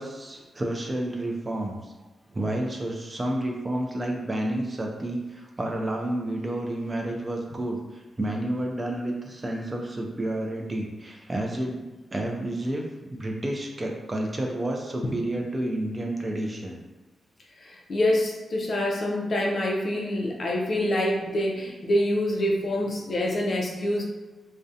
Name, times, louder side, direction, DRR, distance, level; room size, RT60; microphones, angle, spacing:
voice 1, 0.0-1.8 2.3-16.8, right 1 dB, 25° right, 1 dB, 0.3 m, -30 dB
voice 2, 17.6-24.0, left 1 dB, 50° left, -1 dB, 0.5 m, -26 dB
2.4 x 2.1 x 2.6 m, 1.2 s
wide cardioid pair, 125°, 0 cm